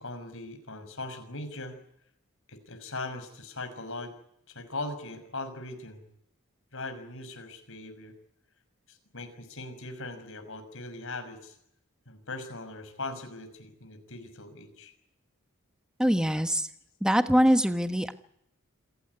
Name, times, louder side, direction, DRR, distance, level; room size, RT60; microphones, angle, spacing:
voice 1, 0.0-1.8 2.5-4.1 4.5-6.1 6.7-8.1 8.9-11.6 12.1-14.9, left 2 dB, 65° left, 8 dB, 5.9 m, -40 dB
voice 2, 16.0-16.7 17.0-18.1, equal, 5° right, 8 dB, 1.3 m, -23 dB
27.5 x 16.0 x 9.7 m, 0.75 s
head